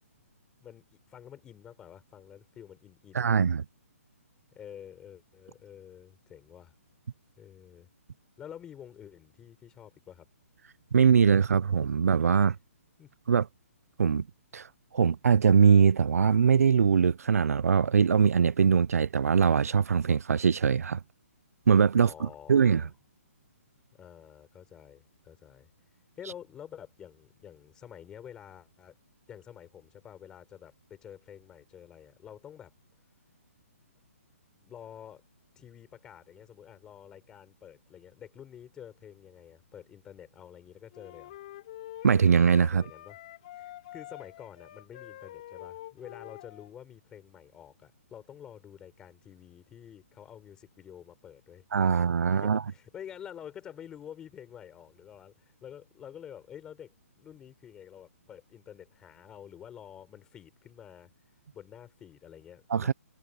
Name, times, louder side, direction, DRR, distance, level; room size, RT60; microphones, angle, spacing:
voice 1, 0.6-3.4 4.5-6.7 7.4-7.9 8.4-10.3 13.0-13.1 22.0-22.9 23.9-25.7 26.2-29.0 29.3-32.7 34.6-35.2 35.6-41.4 42.7-43.2 43.5-51.6 51.9-52.0 52.3-61.1 61.5-62.9, left 9 dB, 10° left, 4.1 m, -49 dB
voice 2, 3.1-3.6 10.9-12.6 13.3-13.5 14.0-14.2 14.5-14.7 14.9-21.0 21.7-22.8 42.0-42.8 51.7-52.6 62.7-62.9, right 6 dB, 80° right, 0.6 m, -22 dB
sound 1, 40.9-46.7, left 14 dB, 30° left, 4.2 m, -46 dB
hypercardioid pair, 175°, 8 cm